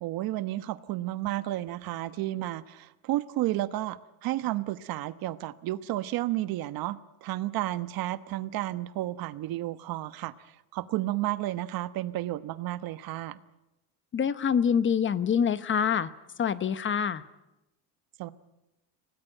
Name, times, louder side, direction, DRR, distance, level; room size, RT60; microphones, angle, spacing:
voice 1, 0.0-13.4 18.2-18.3, right 15 dB, 65° right, 14 dB, 1.1 m, -32 dB
voice 2, 14.1-16.1 16.4-17.2, left 7 dB, 30° left, 14 dB, 0.9 m, -25 dB
25.0 x 18.0 x 9.0 m, 0.98 s
cardioid pair, 125°, 39 cm